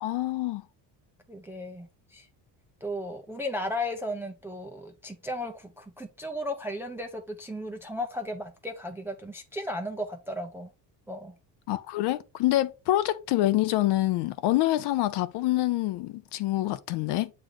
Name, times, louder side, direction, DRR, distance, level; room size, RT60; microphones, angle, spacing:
voice 1, 0.0-0.6 11.7-17.3, left 15 dB, 65° left, 0.6 m, -26 dB
voice 2, 1.3-2.3 2.8-10.7 11.1-11.4, left 1 dB, 5° right, 0.4 m, -35 dB
7.6 x 3.2 x 3.8 m
cardioid pair, 150°, 43 cm